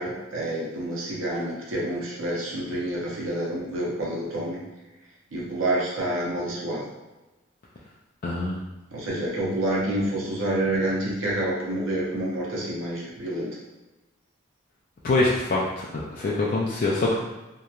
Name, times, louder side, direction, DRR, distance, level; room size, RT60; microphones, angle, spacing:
voice 1, 0.0-4.6 5.3-6.8 8.9-13.5, right 1 dB, 90° right, -4 dB, 0.7 m, -28 dB
voice 2, 8.2-8.6 15.0-17.2, left 2 dB, 45° left, -5 dB, 0.3 m, -24 dB
2.8 x 2.1 x 2.3 m, 1.1 s
head